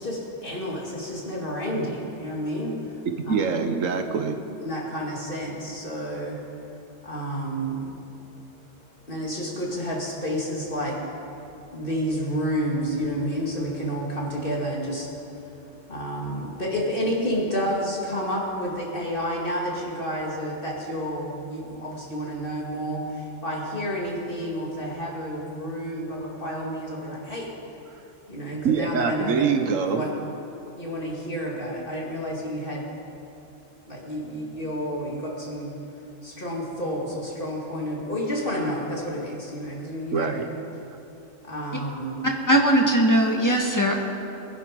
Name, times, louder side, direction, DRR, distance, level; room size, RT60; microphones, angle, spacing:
voice 1, 0.0-3.3 4.6-6.4 7.0-8.0 9.1-27.6 28.3-29.5 29.9-30.1 30.8-32.9 33.9-35.8 36.2-40.4 41.4-42.2, equal, 45° left, -3 dB, 2.7 m, -30 dB
voice 2, 3.2-4.4 28.6-30.0 40.1-40.4, right 6 dB, 85° right, 7 dB, 1.4 m, -24 dB
voice 3, 42.5-44.0, right 1 dB, 15° left, 1 dB, 1.6 m, -19 dB
21.5 x 11.0 x 5.3 m, 2.9 s
omnidirectional pair, 1.3 m